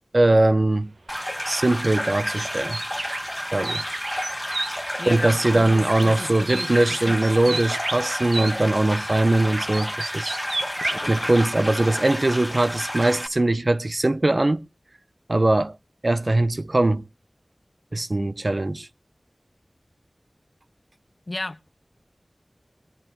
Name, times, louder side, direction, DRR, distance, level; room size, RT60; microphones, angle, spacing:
voice 1, 0.1-0.9 1.5-2.8 3.5-3.8 5.1-10.4 11.1-14.6 15.3-15.7 16.0-17.0 17.9-18.9, right 2 dB, 50° right, 0.6 m, -21 dB
sound 1, 1.1-13.3, equal, 5° left, 1.1 m, -31 dB
sound 2, 1.8-4.7 5.8-6.2 6.5-8.5 9.5-11.0, right 2 dB, 80° right, 1.1 m, -31 dB
voice 2, 5.0-7.2 7.5-7.6 21.3-21.7, left 2 dB, 50° left, 0.7 m, -34 dB
22.0 x 8.7 x 3.7 m
wide cardioid pair, 60°, 0 cm